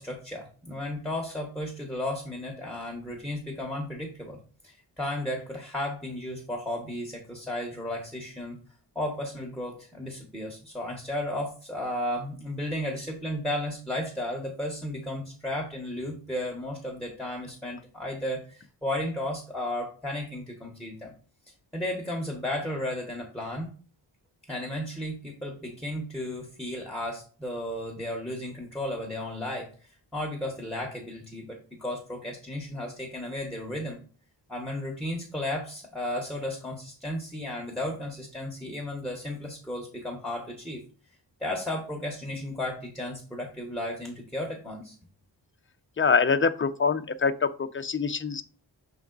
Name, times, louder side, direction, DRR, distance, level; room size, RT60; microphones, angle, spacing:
voice 1, 0.0-4.4 4.6-8.6 8.9-21.1 21.7-23.7 24.5-34.0 34.5-40.8 41.4-44.9, left 1 dB, ahead, 1 dB, 1.2 m, -34 dB
voice 2, 46.0-48.4, left 5 dB, 30° left, 9 dB, 0.5 m, -25 dB
6.9 x 3.5 x 3.9 m, 0.39 s
wide cardioid pair, 105°, 45 cm